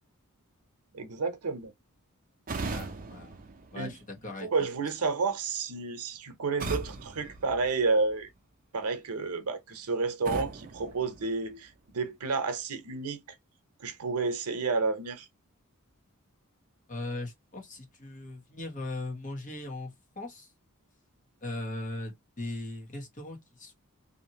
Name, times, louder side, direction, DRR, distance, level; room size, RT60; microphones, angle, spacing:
voice 1, 0.9-1.7 3.7-3.9 4.4-8.3 8.7-13.4 13.8-15.3, right 4 dB, 90° right, 0.7 m, -30 dB
sound 1, 2.5-4.4 6.6-8.3 10.2-11.9, right 3 dB, 40° right, 0.6 m, -39 dB
voice 2, 2.7-3.4 3.7-4.5 16.9-20.5 21.4-23.7, left 2 dB, 35° left, 1.1 m, -39 dB
2.8 x 2.5 x 2.8 m
head